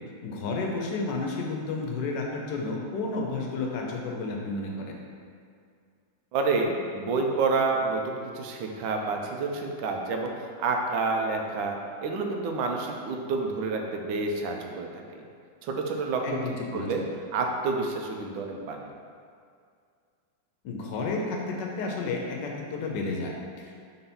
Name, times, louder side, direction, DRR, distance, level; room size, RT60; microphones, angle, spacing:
voice 1, 0.2-4.9 16.2-17.0 20.6-23.8, left 3 dB, 70° left, 0 dB, 1.4 m, -31 dB
voice 2, 6.3-10.3 10.6-11.8 12.0-15.2 15.6-16.2 16.7-17.0 17.3-18.9, right 3 dB, 85° right, 2 dB, 1.5 m, -28 dB
4.4 x 3.9 x 5.6 m, 2.2 s
omnidirectional pair, 2.1 m